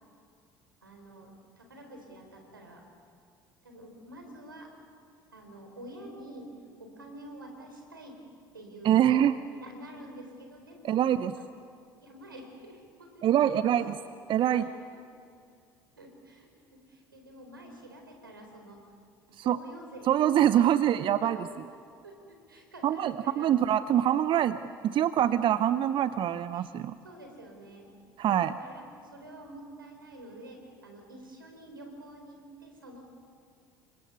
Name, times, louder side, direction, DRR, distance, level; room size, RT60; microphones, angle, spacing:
voice 1, 0.8-2.8 3.6-4.7 5.3-6.5 6.8-8.2 8.5-11.0 11.4-11.5 12.0-13.8 14.4-14.7 16.0-18.8 19.3-20.2 21.2-21.5 22.0-23.5 26.5-26.7 27.0-27.9 28.3-28.8 29.1-33.0, right 1 dB, 90° right, 3 dB, 4.1 m, -48 dB
voice 2, 8.8-9.3 10.8-11.3 13.2-13.9 14.3-14.6 19.4-19.6 20.1-21.4 22.8-24.6 24.8-26.9 28.2-28.5, right 11 dB, 50° right, 14 dB, 0.7 m, -24 dB
28.5 x 24.5 x 6.9 m, 2.3 s
figure-of-eight pair, 60°, 11 cm